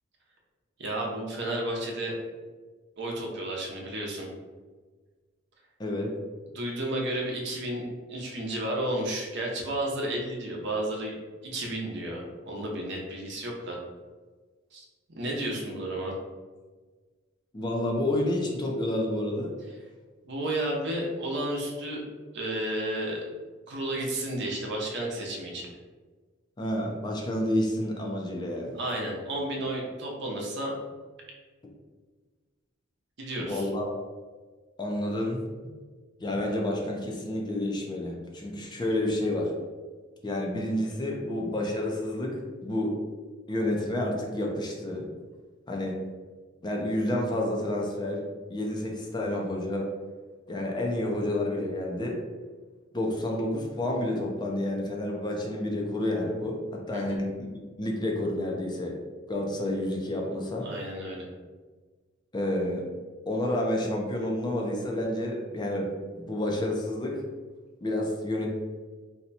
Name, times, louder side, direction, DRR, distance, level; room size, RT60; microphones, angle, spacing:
voice 1, 0.8-2.2 3.0-4.3 6.5-11.1 11.4-13.8 14.7-14.8 15.2-16.2 19.7-19.8 20.2-22.0 22.3-23.2 23.7-25.7 28.7-30.7 33.2-33.7 56.9-57.2 60.6-61.3, right 1 dB, 60° right, -1 dB, 0.8 m, -32 dB
voice 2, 5.8-6.1 17.5-19.5 26.6-28.8 33.4-34.0 34.8-35.4 36.2-39.5 40.2-43.0 43.5-45.1 45.7-46.0 46.6-48.2 48.5-49.9 50.5-52.2 52.9-57.3 57.8-59.0 59.3-60.7 62.3-62.9 63.3-67.2 67.8-68.5, left 1 dB, 20° left, -1 dB, 0.5 m, -29 dB
2.8 x 2.2 x 4.0 m, 1.4 s
head